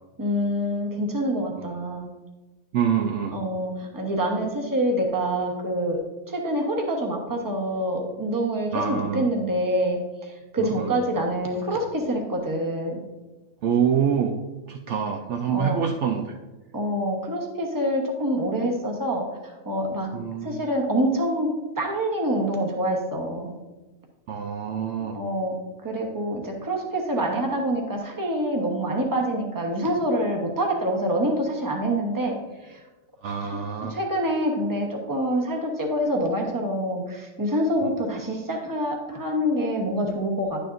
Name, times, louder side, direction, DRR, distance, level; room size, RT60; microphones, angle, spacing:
voice 1, 0.2-2.1 3.3-6.0 6.3-13.0 15.5-15.8 16.7-19.3 19.6-20.1 20.4-21.5 21.8-23.6 25.0-25.5 25.8-32.4 32.6-32.8 33.9-40.6, equal, 15° right, 0 dB, 1.0 m, -26 dB
voice 2, 2.7-3.4 8.7-9.3 10.6-10.9 13.6-14.4 14.7-16.4 20.1-20.6 24.3-25.2 33.2-34.0, right 7 dB, 65° right, 3 dB, 0.8 m, -26 dB
10.5 x 6.7 x 2.6 m, 1.2 s
omnidirectional pair, 1.4 m